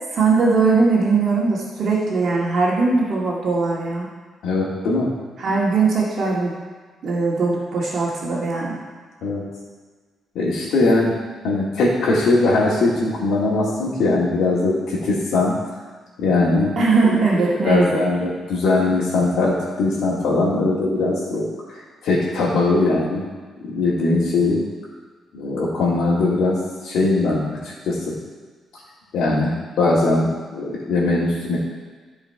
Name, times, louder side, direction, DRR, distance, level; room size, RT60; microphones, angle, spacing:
voice 1, 0.1-4.1 5.4-6.5 7.0-8.8 16.8-18.0, right 4 dB, 50° right, -4 dB, 1.9 m, -20 dB
voice 2, 4.4-5.1 9.2-9.4 10.3-11.1 11.4-15.6 16.2-16.7 17.0-17.1 17.6-21.5 22.0-23.3 23.7-24.6 25.3-26.6 26.8-27.6 27.8-28.1 29.1-31.6, left 2 dB, 75° left, -8 dB, 2.3 m, -20 dB
14.5 x 5.0 x 4.8 m, 1.4 s
cardioid pair, 135°, 0 cm